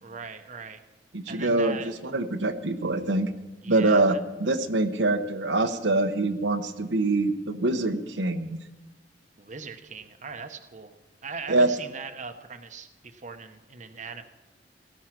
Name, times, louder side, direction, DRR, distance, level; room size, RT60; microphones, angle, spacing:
voice 1, 0.0-0.8 1.3-1.9 3.6-4.2 9.4-10.9 11.2-14.2, right 5 dB, 45° right, 7 dB, 0.9 m, -40 dB
voice 2, 1.1-3.3 3.7-8.6 11.5-11.7, right 2 dB, 90° right, 6 dB, 1.1 m, -24 dB
17.5 x 13.5 x 6.0 m, 1.1 s
head